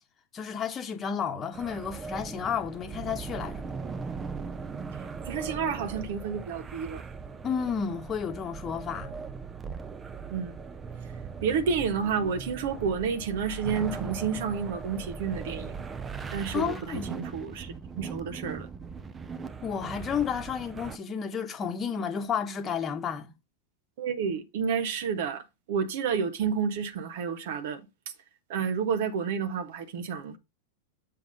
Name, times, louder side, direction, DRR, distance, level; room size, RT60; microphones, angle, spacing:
voice 1, 0.3-3.6 7.4-9.1 16.5-17.1 19.6-23.3, left 7 dB, 25° left, 1.2 m, -31 dB
sound 1, 1.5-21.0, right 5 dB, 20° right, 0.7 m, -39 dB
voice 2, 5.2-7.0 10.3-10.5 11.4-15.7 16.3-18.7 24.0-25.4 25.7-27.8 28.5-30.4, right 6 dB, 55° right, 1.1 m, -30 dB
7.7 x 3.6 x 5.3 m
figure-of-eight pair, 90°, 0 cm